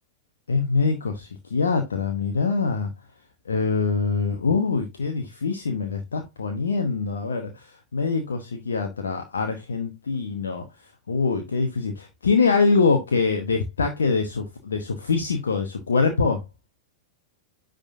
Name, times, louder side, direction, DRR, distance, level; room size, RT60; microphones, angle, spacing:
voice 1, 0.5-2.9 3.5-10.7 11.1-16.4, left 4 dB, 70° left, 1.0 m, -24 dB
9.9 x 3.9 x 2.5 m
figure-of-eight pair, 90°, 0 cm